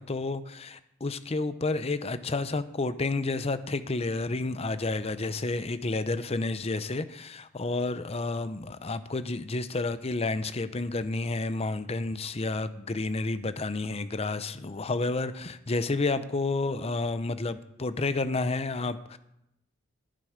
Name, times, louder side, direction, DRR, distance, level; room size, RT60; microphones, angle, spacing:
voice 1, 0.0-19.2, left 3 dB, 30° left, 0.7 m, -30 dB
20.0 x 7.7 x 5.1 m
head